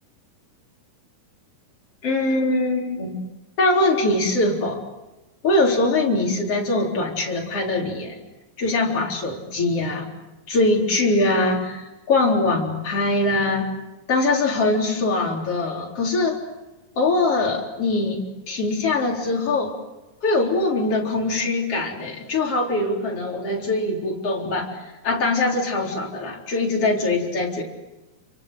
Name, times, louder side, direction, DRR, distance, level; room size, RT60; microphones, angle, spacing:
voice 1, 2.0-3.2 3.6-4.8 5.4-8.2 8.6-10.1 10.5-13.7 14.1-16.4 17.0-19.7 20.2-27.6, left 2 dB, 45° left, 0 dB, 5.0 m, -22 dB
29.0 x 24.0 x 8.2 m, 1.1 s
omnidirectional pair, 3.9 m